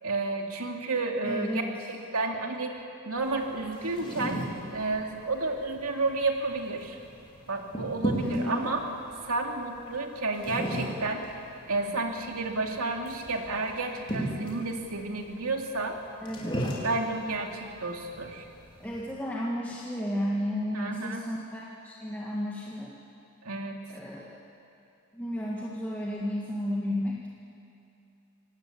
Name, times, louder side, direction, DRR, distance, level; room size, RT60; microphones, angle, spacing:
voice 1, 0.0-1.6 1.9-2.8 3.0-4.4 4.7-7.0 7.5-8.9 9.3-11.3 11.7-16.0 16.8-18.4 20.7-21.3 23.4-23.8, right 3 dB, 80° right, 2 dB, 2.7 m, -31 dB
voice 2, 1.2-1.7 8.2-8.7 16.2-16.5 18.8-22.9 23.9-24.4 25.1-27.3, equal, 10° left, -4 dB, 1.7 m, -33 dB
sound 1, 3.2-19.0, equal, 25° left, 4.0 m, -37 dB
27.0 x 18.5 x 8.5 m, 2.7 s
head